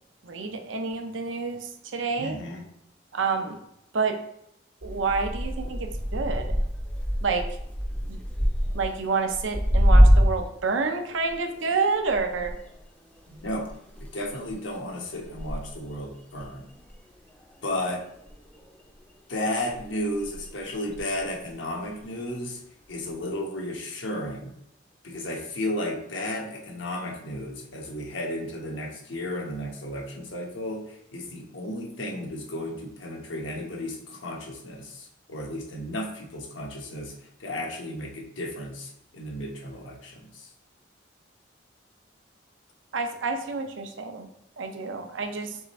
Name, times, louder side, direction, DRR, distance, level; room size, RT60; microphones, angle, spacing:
voice 1, 0.2-2.4 3.1-3.6 3.9-4.2 4.8-6.6 7.2-7.5 8.1-8.2 8.7-12.5 42.9-44.3 44.6-45.6, right 4 dB, 85° right, 6 dB, 0.6 m, -28 dB
voice 2, 2.2-2.6 13.3-13.7 14.1-16.6 17.6-18.0 19.3-22.6 22.9-24.5 25.0-37.1 37.4-40.5, left 1 dB, 80° left, 1 dB, 1.0 m, -33 dB
sound 1, 4.8-10.6 10.9-18.0 18.3-19.0 19.7-21.6 22.0-22.4 23.1-23.2, equal, 5° left, 0.5 m, -25 dB
3.6 x 3.3 x 4.1 m, 0.79 s
head